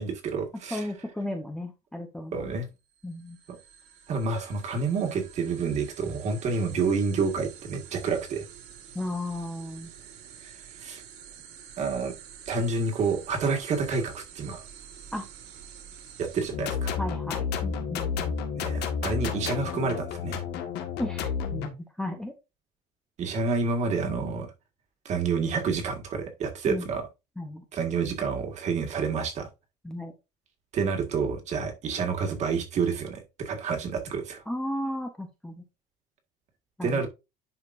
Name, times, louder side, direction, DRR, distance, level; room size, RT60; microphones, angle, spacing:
voice 1, 0.0-0.9 2.3-2.7 3.5-3.6 4.1-8.4 10.4-10.5 10.8-11.0 11.8-12.1 12.5-14.6 16.2-17.0 18.5-20.4 23.2-24.5 25.1-27.0 27.7-29.5 30.7-34.4 36.8-37.1, right 4 dB, 35° right, 1.8 m, -29 dB
voice 2, 0.7-2.5 3.0-3.4 8.9-9.9 15.1-15.2 17.0-18.3 21.0-22.3 26.7-26.9 27.4-27.6 29.8-30.1 34.5-35.6 36.8-37.0, left 1 dB, 5° left, 0.8 m, -34 dB
sound 1, 2.9-16.5, right 8 dB, 60° right, 2.3 m, -48 dB
sound 2, 16.5-21.7, left 6 dB, 55° left, 1.7 m, -31 dB
10.5 x 5.0 x 2.6 m
cardioid pair, 175°, 20 cm